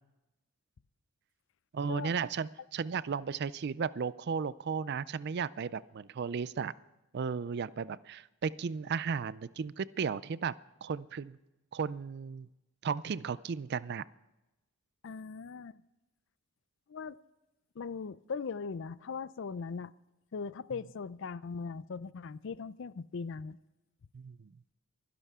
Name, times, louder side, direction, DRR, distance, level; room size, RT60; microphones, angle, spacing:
voice 1, 1.7-6.7 7.1-10.5 10.8-11.4 11.7-12.5 12.8-14.0 24.1-24.5, right 6 dB, 50° right, 19 dB, 0.4 m, -35 dB
voice 2, 15.0-15.7 16.9-17.2 17.8-19.9 20.3-23.6, left 5 dB, 55° left, 18 dB, 0.4 m, -39 dB
23.5 x 11.0 x 3.6 m, 0.99 s
head